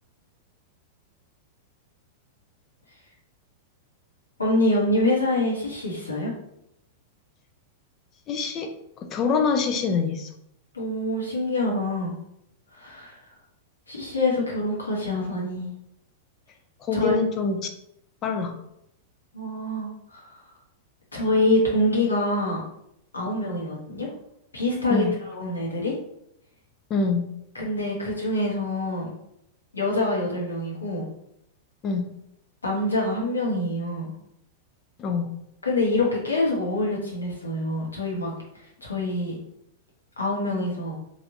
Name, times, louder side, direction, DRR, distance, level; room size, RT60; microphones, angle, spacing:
voice 1, 4.4-6.3 10.7-12.1 12.7-13.2 13.9-15.7 16.9-17.1 19.3-20.3 21.1-22.7 23.1-24.1 24.5-25.9 27.5-29.1 29.7-31.1 32.6-34.1 35.6-38.3 38.8-39.4 40.2-40.9, left 1 dB, 85° left, -3 dB, 1.0 m, -25 dB
voice 2, 8.3-8.7 9.0-10.3 16.8-17.7 18.2-18.6 24.9-25.2 26.9-27.3 31.8-32.1 35.0-35.3, left 4 dB, 35° left, 5 dB, 0.5 m, -25 dB
3.2 x 2.6 x 2.6 m, 0.78 s
figure-of-eight pair, 95°, 0 cm